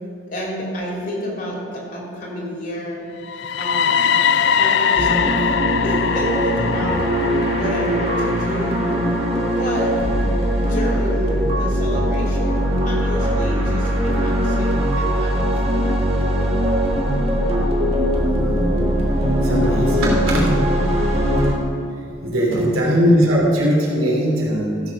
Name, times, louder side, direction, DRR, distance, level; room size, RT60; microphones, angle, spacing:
voice 1, 0.3-3.0 3.6-4.0 4.6-5.5 5.8-7.1 7.5-8.9 9.6-9.9 10.7-16.0 21.0-21.3 22.7-22.9, equal, 40° left, -3 dB, 2.8 m, -30 dB
sound 1, 3.2-11.1, left 7 dB, 60° left, 0.3 m, -22 dB
sound 2, 5.0-21.5, equal, 30° right, 1.6 m, -20 dB
voice 2, 18.1-18.8 19.4-20.5 22.2-24.8, equal, 90° right, -3 dB, 3.2 m, -19 dB
15.0 x 7.3 x 5.4 m, 2.7 s
head